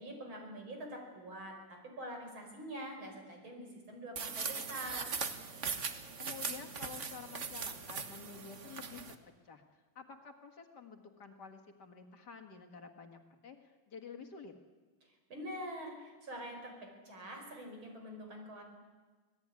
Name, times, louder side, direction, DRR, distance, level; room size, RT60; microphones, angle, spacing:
voice 1, 0.0-5.1 15.0-18.6, right 1 dB, 70° right, 3 dB, 5.9 m, -45 dB
sound 1, 4.2-9.2, right 5 dB, 40° right, 1.5 m, -40 dB
voice 2, 6.2-9.2 9.4-14.5, left 6 dB, 55° left, 4 dB, 2.3 m, -51 dB
26.0 x 18.0 x 9.7 m, 1.4 s
omnidirectional pair, 2.3 m